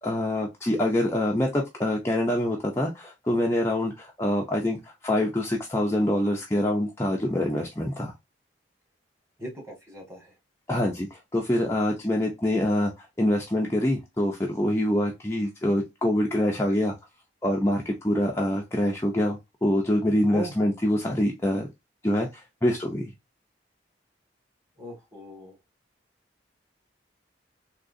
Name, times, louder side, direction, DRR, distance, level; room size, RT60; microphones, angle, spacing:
voice 1, 0.0-8.1 10.7-17.0 17.4-21.7 22.0-23.1, left 1 dB, 15° left, -1 dB, 0.6 m, -25 dB
voice 2, 9.4-10.3 20.3-20.5 24.8-25.6, right 1 dB, 15° right, 0 dB, 1.6 m, -38 dB
3.7 x 2.9 x 2.5 m, 0.21 s
head